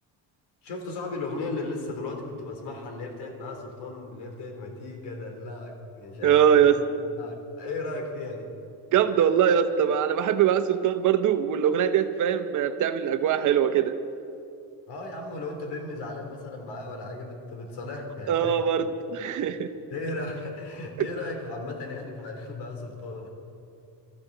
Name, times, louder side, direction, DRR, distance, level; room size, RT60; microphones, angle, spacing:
voice 1, 0.6-6.7 7.0-8.5 14.9-18.6 19.9-23.3, left 2 dB, 75° left, 2 dB, 3.3 m, -36 dB
voice 2, 6.2-6.8 8.9-13.9 18.3-19.7 21.0-21.1, right 9 dB, 50° right, 10 dB, 1.0 m, -22 dB
23.0 x 13.5 x 4.0 m, 2.6 s
cardioid pair, 130°, 40 cm